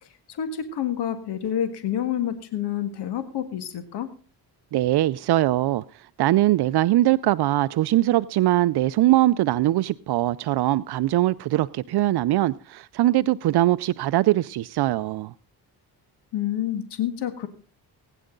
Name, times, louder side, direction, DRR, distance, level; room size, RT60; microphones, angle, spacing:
voice 1, 0.3-4.1 16.3-17.5, left 10 dB, 90° left, 1.9 m, -28 dB
voice 2, 4.7-15.3, right 15 dB, 75° right, 0.6 m, -21 dB
21.5 x 10.0 x 3.8 m
cardioid pair, 115°, 39 cm